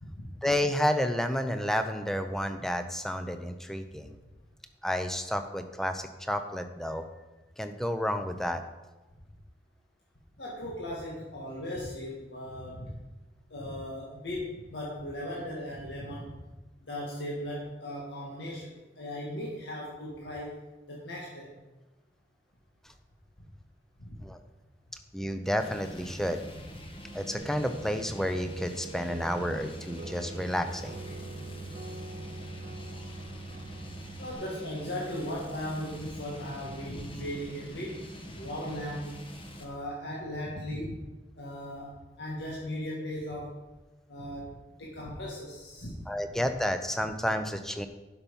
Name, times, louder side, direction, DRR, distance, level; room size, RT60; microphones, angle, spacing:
voice 1, 0.4-4.2 4.8-7.0 7.6-8.6 24.2-24.4 25.1-26.4 27.1-31.0 46.1-47.9, equal, ahead, 7 dB, 0.6 m, -30 dB
voice 2, 10.4-13.0 13.5-16.3 16.8-21.6 24.0-24.2 34.2-38.1 38.3-39.2 39.6-41.0 41.4-43.6 44.1-44.5 44.8-46.0, equal, 80° left, -4 dB, 1.9 m, -37 dB
sound 1, 25.6-39.7, equal, 30° left, 1.2 m, -45 dB
sound 2, 27.3-34.3, right 3 dB, 45° right, 0.6 m, -43 dB
11.5 x 6.0 x 5.4 m, 1.1 s
head